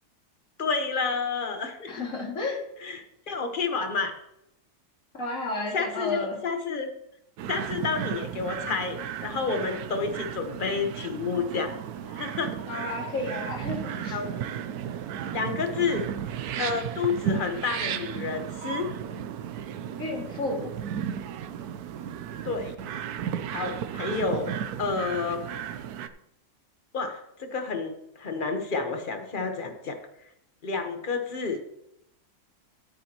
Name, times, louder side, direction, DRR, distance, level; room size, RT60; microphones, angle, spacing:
voice 1, 0.6-1.9 2.8-4.1 5.7-6.9 7.5-11.7 12.1-12.5 14.1-14.3 15.3-16.0 16.6-18.9 22.4-22.7 23.5-25.4 26.9-30.0 30.6-31.6, left 4 dB, 35° left, 5 dB, 1.3 m, -30 dB
voice 2, 1.9-2.6 5.1-6.4 12.7-14.2 20.0-20.7, left 2 dB, 55° left, 0 dB, 2.8 m, -32 dB
sound 1, 7.4-26.1, right 9 dB, 75° right, 1.2 m, -34 dB
13.0 x 9.4 x 3.0 m, 0.79 s
omnidirectional pair, 1.7 m